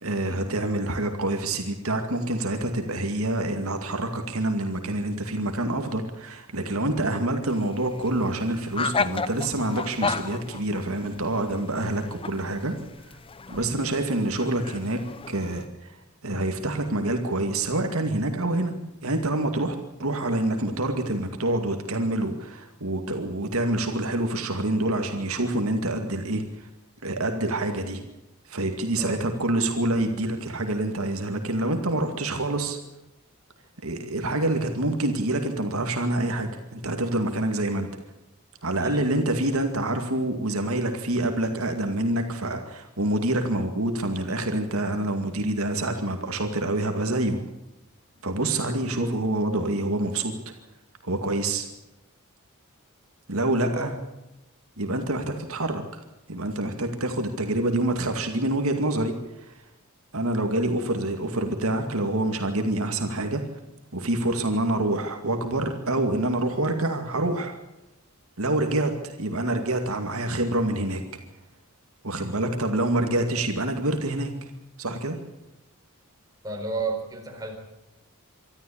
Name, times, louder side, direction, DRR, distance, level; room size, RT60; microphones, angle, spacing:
voice 1, 0.0-12.7 13.1-13.2 13.5-15.0 15.3-18.7 19.0-26.7 27.0-28.0 28.5-32.8 33.8-37.9 38.6-47.4 48.2-50.3 51.0-51.7 53.3-54.0 54.8-55.8 56.3-59.6 60.1-63.4 63.9-67.6 68.4-71.0 72.0-74.5 74.8-75.2, right 1 dB, 70° right, 5 dB, 2.3 m, -26 dB
sound 1, 7.5-15.7, left 5 dB, 25° left, 0.7 m, -34 dB
voice 2, 76.4-77.6, right 3 dB, 15° right, 2 dB, 4.4 m, -33 dB
25.0 x 13.0 x 8.7 m, 0.94 s
head